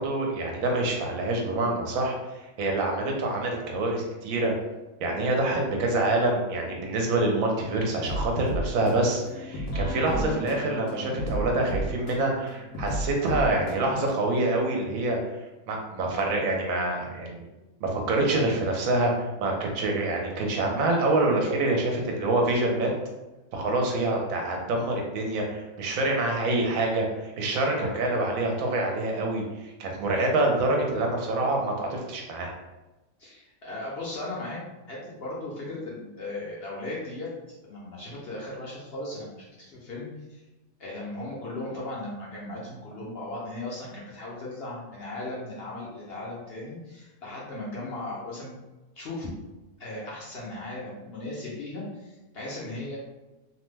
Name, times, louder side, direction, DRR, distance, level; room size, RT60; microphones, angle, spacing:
voice 1, 0.0-2.1 2.6-4.5 5.0-15.2 15.7-17.5 17.8-19.1 19.4-22.9 23.5-32.5, right 2 dB, 75° right, 1 dB, 1.0 m, -26 dB
sound 1, 8.1-14.2, equal, 75° left, 1.0 m, -33 dB
voice 2, 33.2-34.6 34.9-37.3 37.6-40.4 40.8-48.5 49.0-49.3 49.8-53.0, left 2 dB, 55° left, -5 dB, 0.7 m, -37 dB
2.8 x 2.1 x 3.2 m, 1.1 s
omnidirectional pair, 1.5 m